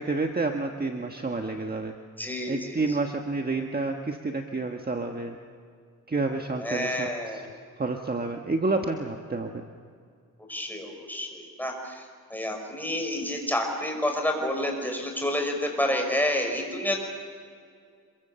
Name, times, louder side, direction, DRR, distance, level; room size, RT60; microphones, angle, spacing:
voice 1, 0.0-1.9 2.5-5.4 6.1-7.4 7.8-9.6, right 3 dB, 30° right, 3 dB, 1.4 m, -29 dB
voice 2, 2.2-3.0 6.6-7.5 10.5-17.0, left 1 dB, 5° left, 2 dB, 5.7 m, -29 dB
27.0 x 23.5 x 6.9 m, 2.2 s
wide cardioid pair, 105°, 33 cm